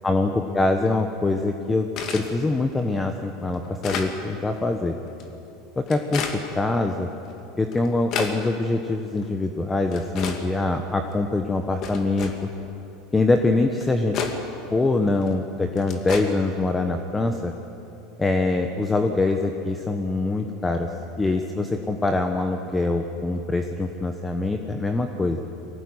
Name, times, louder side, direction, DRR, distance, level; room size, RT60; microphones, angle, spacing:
voice 1, 0.0-1.9 2.1-5.0 5.8-7.1 7.6-12.5 13.1-14.3 14.7-17.5 18.2-25.4, left 2 dB, 10° left, 5 dB, 1.2 m, -24 dB
sound 1, 2.0-2.3 2.9-3.0 3.5-4.1 5.1-5.2 5.9-6.4 7.3-7.4 7.7-8.4 9.2-9.3 9.9-10.4 11.1-11.2 11.8-12.4 13.4-13.5 13.8-14.4 15.2-15.3 15.8-16.2, left 6 dB, 45° left, 2.6 m, -30 dB
24.0 x 18.0 x 9.8 m, 2.9 s
supercardioid pair, 135°, 0 cm